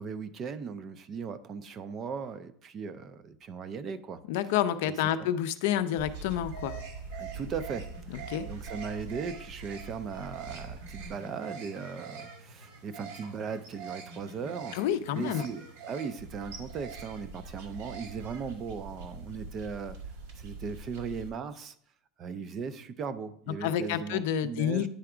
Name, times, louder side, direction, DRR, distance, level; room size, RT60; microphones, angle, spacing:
voice 1, 0.0-4.2 4.9-5.0 5.2-5.3 7.2-8.2 8.5-14.8 15.1-20.0 20.4-21.7 22.2-24.9, right 5 dB, 25° right, 12 dB, 0.4 m, -38 dB
voice 2, 4.3-6.7 8.3-8.5 14.7-15.4 23.6-24.9, left 10 dB, 60° left, 10 dB, 0.5 m, -29 dB
sound 1, 6.0-21.3, right 4 dB, 70° right, 1.6 m, -43 dB
9.8 x 3.4 x 4.9 m, 0.65 s
supercardioid pair, 180°, 0 cm